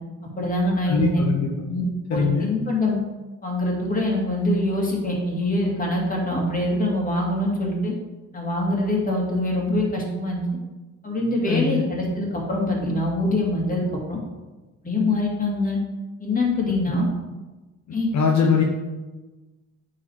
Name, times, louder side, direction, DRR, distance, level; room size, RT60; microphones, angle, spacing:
voice 1, 0.2-1.2 1.7-1.8 2.1-3.0 3.4-7.9 8.3-10.4 11.0-14.2 14.8-15.8 16.2-17.1 17.9-18.1 18.4-18.5, left 1 dB, 25° left, -2 dB, 2.5 m, -24 dB
voice 2, 0.9-1.7 2.1-2.5 11.5-11.9 16.7-16.8 18.1-18.6, left 6 dB, 65° left, 0 dB, 1.0 m, -22 dB
8.9 x 4.1 x 4.7 m, 1.2 s
cardioid pair, 90°, 30 cm